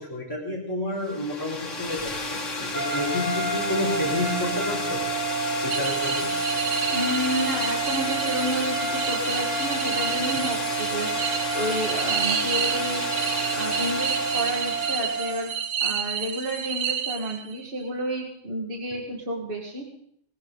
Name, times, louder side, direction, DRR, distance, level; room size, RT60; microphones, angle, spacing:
voice 1, 0.0-5.0 5.6-6.3 18.9-19.0, left 1 dB, 20° left, -5 dB, 3.8 m, -30 dB
sound 1, 1.0-15.5, left 2 dB, 85° left, 2.1 m, -32 dB
sound 2, 2.7-15.6, right 4 dB, 10° right, 5.2 m, -30 dB
sound 3, 5.7-17.7, right 8 dB, 80° right, 1.1 m, -30 dB
voice 2, 6.9-11.1 11.5-13.1 13.5-15.5 15.8-19.8, equal, 50° right, 0 dB, 2.1 m, -30 dB
19.0 x 15.0 x 4.0 m, 0.68 s
omnidirectional pair, 1.2 m